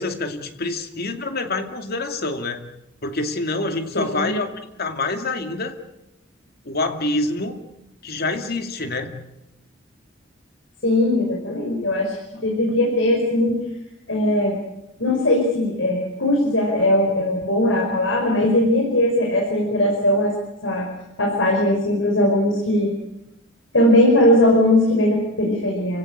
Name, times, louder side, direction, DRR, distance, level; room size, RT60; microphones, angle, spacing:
voice 1, 0.0-2.7 3.0-4.5 4.8-5.8 6.6-7.6 8.0-9.2, left 2 dB, 55° left, 6 dB, 2.4 m, -26 dB
voice 2, 3.9-4.3 10.8-12.1 12.4-13.6 14.1-14.6 15.0-20.3 20.6-20.9 21.2-22.9 23.7-26.0, left 1 dB, 70° left, 0 dB, 5.4 m, -19 dB
28.5 x 16.5 x 8.8 m, 0.90 s
head